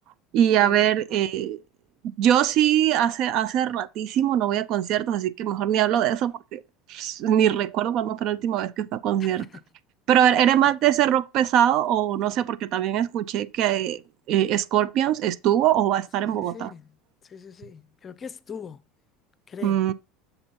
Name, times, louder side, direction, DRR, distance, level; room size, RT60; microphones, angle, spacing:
voice 1, 0.3-1.6 2.0-6.6 6.9-9.4 10.1-14.0 14.3-16.7 19.6-19.9, right 11 dB, 55° right, 0.4 m, -22 dB
voice 2, 9.2-9.6 10.2-10.3 16.2-18.8 19.5-19.8, left 6 dB, 30° left, 0.5 m, -42 dB
7.0 x 2.7 x 5.3 m
supercardioid pair, 110°, 0 cm